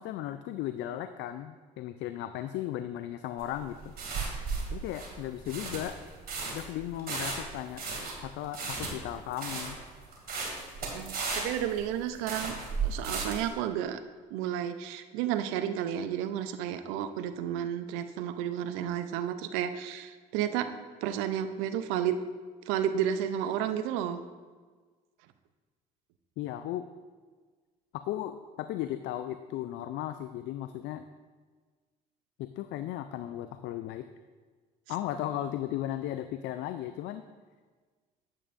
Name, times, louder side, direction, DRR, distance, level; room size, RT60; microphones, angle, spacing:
voice 1, 0.0-3.9 4.7-6.0 6.5-7.9 8.2-9.8 26.4-26.9 27.9-31.1 32.4-34.1 34.9-37.2, left 12 dB, 60° left, 10 dB, 0.4 m, -36 dB
sound 1, 3.4-13.5, right 4 dB, 45° right, 2.4 m, -35 dB
voice 2, 10.9-12.5 12.8-14.0 14.3-20.7 21.0-22.2 22.7-24.2, right 10 dB, 75° right, 10 dB, 0.6 m, -32 dB
9.0 x 8.5 x 2.5 m, 1.4 s
hypercardioid pair, 65°, 21 cm